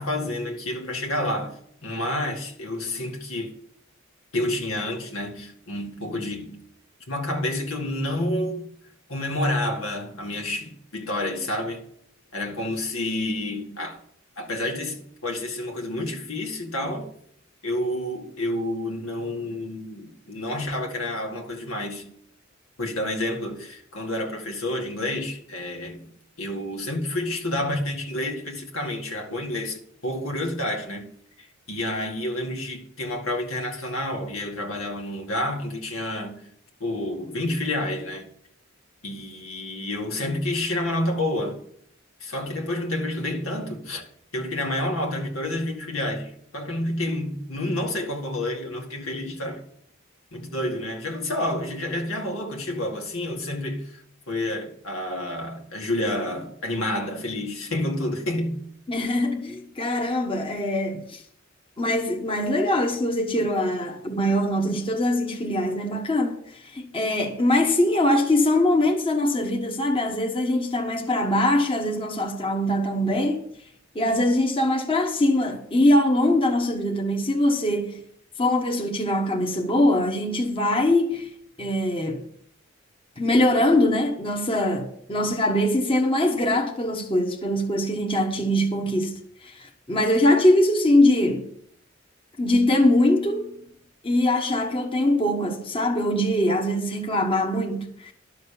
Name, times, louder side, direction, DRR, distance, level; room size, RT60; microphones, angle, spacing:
voice 1, 0.0-3.6 4.3-6.6 7.1-8.6 9.1-11.9 12.3-14.0 14.4-17.1 17.6-22.1 22.8-26.1 26.4-31.1 31.4-36.4 36.8-38.3 39.0-41.6 42.2-44.1 44.3-49.6 50.3-58.6, left 1 dB, 90° left, 2.1 m, -29 dB
voice 2, 58.9-61.2 61.8-66.4 66.7-73.4 73.9-78.0 78.4-81.3 81.6-82.2 83.2-91.5 92.4-93.5 94.0-98.1, left 1 dB, 25° left, 1.3 m, -22 dB
12.0 x 6.6 x 6.9 m
head